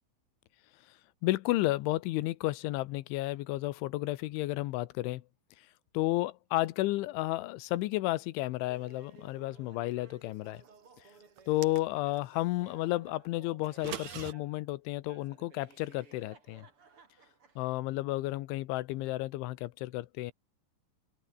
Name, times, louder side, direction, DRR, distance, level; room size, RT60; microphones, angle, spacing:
voice 1, 1.2-5.2 5.9-10.6 11.5-16.7 17.6-20.3, left 18 dB, 90° left, 3.4 m, -32 dB
Laughter, 8.7-14.6 15.1-17.7, right 5 dB, 30° right, 3.8 m, -58 dB
sound 1, 11.4-12.3 13.6-14.3, right 10 dB, 60° right, 1.9 m, -42 dB
open air
omnidirectional pair, 5.3 m